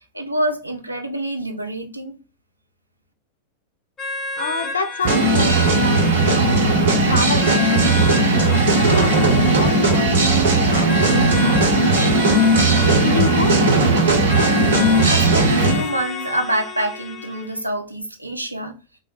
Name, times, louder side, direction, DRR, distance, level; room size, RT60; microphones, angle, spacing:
voice 1, 0.1-2.2 15.0-18.7, right 1 dB, 85° right, 0.5 m, -26 dB
sound 1, 4.0-17.6, left 3 dB, 20° left, 0.7 m, -31 dB
voice 2, 4.4-6.7 7.0-13.5, left 2 dB, 75° left, 0.5 m, -28 dB
sound 2, 5.0-15.8, right 2 dB, 60° right, 0.9 m, -17 dB
3.3 x 2.1 x 3.7 m
figure-of-eight pair, 90°, 0 cm